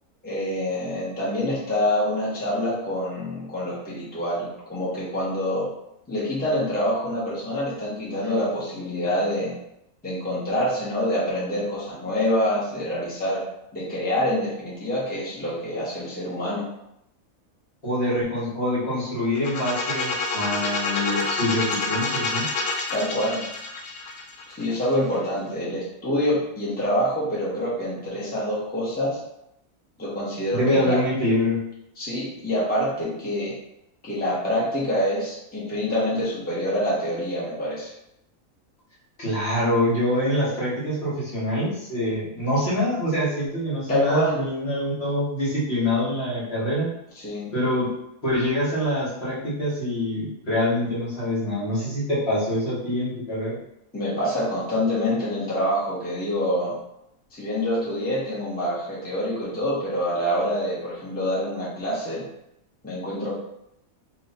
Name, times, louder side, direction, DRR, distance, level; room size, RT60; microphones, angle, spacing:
voice 1, 0.2-5.7 6.1-9.5 10.0-13.4 13.7-16.7 22.9-23.4 24.5-29.2 30.0-31.0 32.0-33.5 34.0-37.9 43.9-44.4 47.1-47.5 53.9-56.7 57.3-62.2 62.8-63.3, equal, 10° left, -8 dB, 0.9 m, -26 dB
voice 2, 17.8-22.4 30.5-31.6 39.2-46.9 47.5-47.9 48.2-53.6, left 1 dB, 50° left, -7 dB, 1.5 m, -25 dB
sound 1, 19.4-25.2, left 3 dB, 70° left, 1.0 m, -28 dB
3.1 x 2.7 x 4.1 m, 0.81 s
omnidirectional pair, 1.5 m